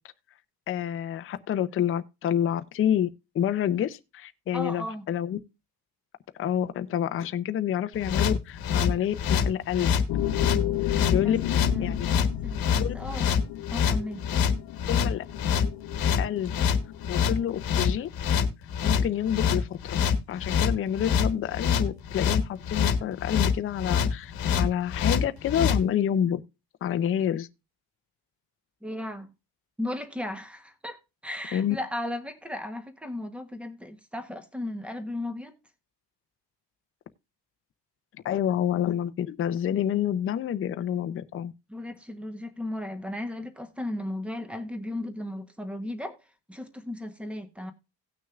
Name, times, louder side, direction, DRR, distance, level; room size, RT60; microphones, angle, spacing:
voice 1, 0.7-3.1 3.3-5.4 6.4-9.9 10.8-11.4 11.8-12.1 12.8-12.9 14.9-15.2 16.2-16.5 17.1-18.1 18.8-20.0 20.3-26.4 26.8-27.5 31.5-31.8 38.2-41.5, left 10 dB, 30° left, 0.5 m, -28 dB
voice 2, 4.5-5.1 11.1-11.4 11.7-13.3 13.7-14.3 28.8-29.3 29.8-31.0 31.2-35.6 41.7-46.2 46.5-47.7, left 1 dB, 5° right, 0.9 m, -35 dB
sound 1, 8.0-25.8, left 7 dB, 55° left, 1.2 m, -25 dB
sound 2, 10.1-17.6, left 12 dB, 80° left, 0.7 m, -33 dB
17.5 x 6.2 x 2.3 m
cardioid pair, 170°, 41 cm